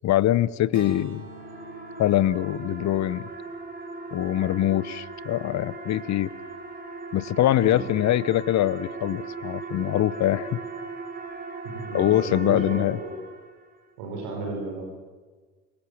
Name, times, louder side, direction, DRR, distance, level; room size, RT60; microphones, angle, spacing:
voice 1, 0.0-1.2 2.0-3.3 4.1-6.3 7.1-10.6 11.9-13.0, left 13 dB, 40° left, 21 dB, 1.0 m, -23 dB
sound 1, 0.7-4.7, right 3 dB, 85° right, 3.8 m, -46 dB
trumpet chorus, 1.0-13.7, right 3 dB, 20° right, 5.7 m, -38 dB
voice 2, 11.6-13.1 14.0-14.8, right 3 dB, 60° right, 0 dB, 5.5 m, -33 dB
27.0 x 23.5 x 7.3 m, 1.5 s
figure-of-eight pair, 55°, 41 cm